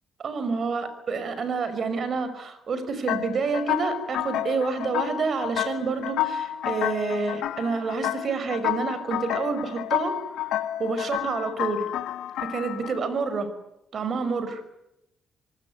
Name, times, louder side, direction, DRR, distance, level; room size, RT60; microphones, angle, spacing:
voice 1, 0.2-10.2 10.8-11.9 12.4-13.5 13.9-14.6, right 4 dB, 50° right, 12 dB, 5.6 m, -28 dB
sound 1, 3.1-13.0, left 12 dB, 85° left, 1.6 m, -30 dB
26.0 x 19.5 x 9.6 m, 0.84 s
cardioid pair, 90°, 0 cm